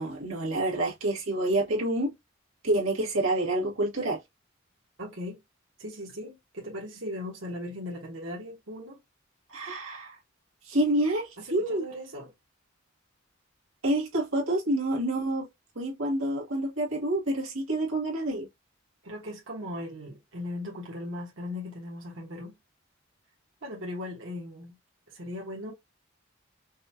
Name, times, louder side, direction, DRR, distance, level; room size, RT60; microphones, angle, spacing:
voice 1, 0.0-2.1 2.6-4.2 9.5-10.2 10.6-11.8 13.8-15.5 15.8-18.5, right 1 dB, 90° right, 1.8 m, -28 dB
voice 2, 5.0-5.4 5.8-9.0 11.4-12.3 19.0-22.6 23.6-24.7 25.1-25.7, left 1 dB, 65° right, 1.4 m, -38 dB
5.4 x 2.5 x 2.8 m
head